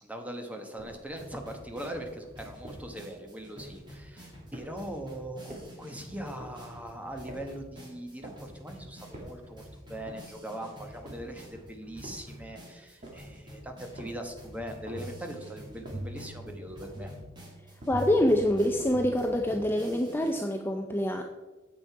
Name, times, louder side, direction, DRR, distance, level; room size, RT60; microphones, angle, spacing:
voice 1, 0.0-9.6 9.9-17.1, right 1 dB, 10° right, 4 dB, 1.1 m, -41 dB
sound 1, 0.8-1.2 1.7-2.1 2.6-3.0 3.6-4.0 4.5-5.0 5.5-5.9 6.4-6.7 7.3-7.7 8.2-8.6 9.1-9.5 10.1-10.5 11.0-11.5 12.0-12.4 13.0-13.4 14.0-14.3 14.9-15.3 15.8-16.2 16.8-17.2 17.8-18.2 18.8-19.2, right 1 dB, 40° right, 1.9 m, -48 dB
sound 2, 1.2-20.3, equal, 25° right, 2.7 m, -49 dB
sound 3, 14.5-19.8, right 1 dB, 65° right, 3.0 m, -43 dB
voice 2, 17.9-21.2, left 1 dB, 10° left, 3 dB, 0.5 m, -26 dB
8.7 x 7.6 x 4.7 m, 1.2 s
head